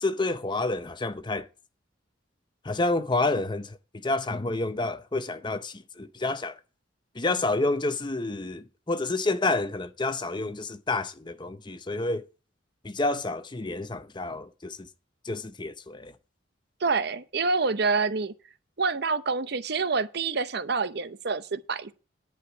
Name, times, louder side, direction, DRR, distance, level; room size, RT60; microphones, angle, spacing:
voice 1, 0.0-1.5 2.6-3.8 4.0-6.6 7.2-12.2 12.8-14.9 15.2-16.1, left 2 dB, 25° left, 0.7 m, -29 dB
voice 2, 16.8-18.3 18.8-21.9, right 4 dB, 60° right, 0.7 m, -27 dB
11.0 x 5.0 x 8.1 m
head